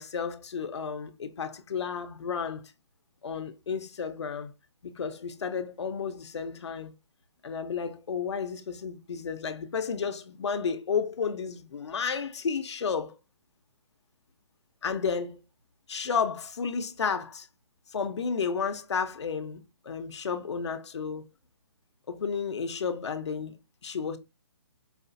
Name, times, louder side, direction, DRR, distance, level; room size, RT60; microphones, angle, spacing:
voice 1, 0.0-2.6 3.2-4.5 4.8-6.9 7.4-13.1 14.8-15.4 15.9-17.5 17.9-21.3 22.1-23.5 23.8-24.2, left 6 dB, 70° left, 0.6 m, -32 dB
4.9 x 2.3 x 2.5 m
hypercardioid pair, 175°, 15 cm